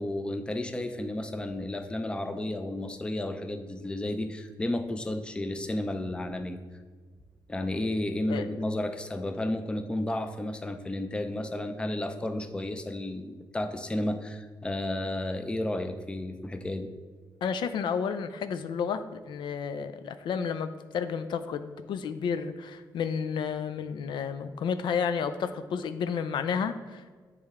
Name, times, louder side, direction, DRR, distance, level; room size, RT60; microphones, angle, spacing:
voice 1, 0.0-6.6 7.5-16.9, left 1 dB, 10° left, 7 dB, 0.4 m, -32 dB
voice 2, 17.4-27.1, left 6 dB, 80° left, 10 dB, 0.4 m, -31 dB
8.4 x 3.2 x 3.5 m, 1.5 s
cardioid pair, 115°, 8 cm